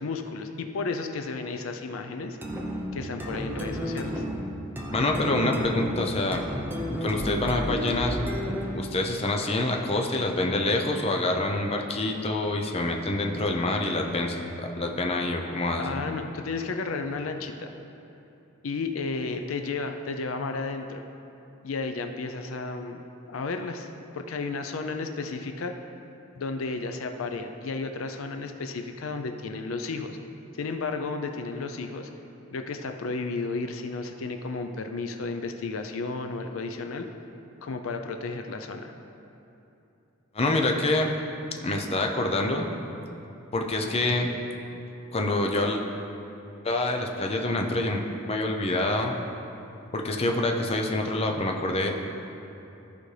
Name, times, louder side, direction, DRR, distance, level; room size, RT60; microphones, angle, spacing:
voice 1, 0.0-2.4 2.9-4.3 15.8-17.7 18.6-21.0 21.6-23.0 23.3-25.7 26.4-30.2 30.6-32.1 32.5-37.1 37.6-38.9, left 3 dB, 80° left, 6 dB, 0.5 m, -33 dB
sound 1, 2.4-8.9, equal, 10° right, 0.7 m, -32 dB
voice 2, 4.9-6.5 7.0-8.2 8.7-16.0 40.3-41.1 41.6-42.7 43.5-44.3 45.1-45.8 46.6-49.1 49.9-52.0, left 2 dB, 30° left, 2 dB, 0.6 m, -26 dB
14.0 x 5.1 x 3.3 m, 2.9 s
head